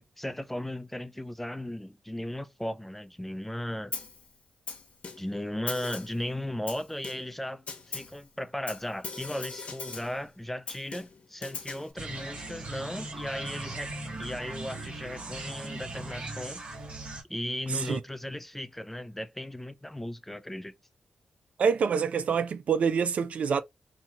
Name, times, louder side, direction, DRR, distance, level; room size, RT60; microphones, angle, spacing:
voice 1, 0.0-3.9 5.2-13.9 14.2-16.6 17.3-20.7, left 1 dB, 10° left, 0.4 m, -36 dB
Snare drum, 3.9-4.2 4.7-5.4 5.7-6.2 6.7-7.4 7.7-8.2 8.7-10.2 10.7-11.9, left 4 dB, 60° left, 0.8 m, -40 dB
sound 1, 12.0-17.2, right 2 dB, 55° right, 1.1 m, -39 dB
voice 2, 17.7-18.0 21.6-23.6, right 6 dB, 70° right, 0.3 m, -26 dB
2.7 x 2.2 x 2.8 m
cardioid pair, 60°, 2 cm